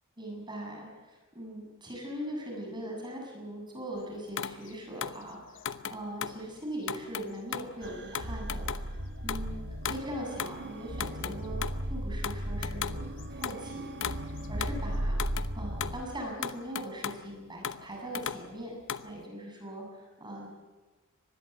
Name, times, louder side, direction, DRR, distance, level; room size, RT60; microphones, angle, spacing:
voice 1, 0.2-13.0 13.3-15.3 15.5-18.8 19.0-20.5, equal, 20° right, 0 dB, 7.5 m, -41 dB
sound 1, 4.4-6.4 6.8-10.1 10.4-10.6 10.9-11.8 12.2-13.7 14.0-14.8 15.1-16.1 16.4-17.2 17.6-19.1, left 8 dB, 60° left, 0.9 m, -37 dB
sound 2, 7.8-16.1, right 1 dB, 55° right, 2.2 m, -36 dB
25.0 x 20.0 x 8.2 m, 1.3 s
head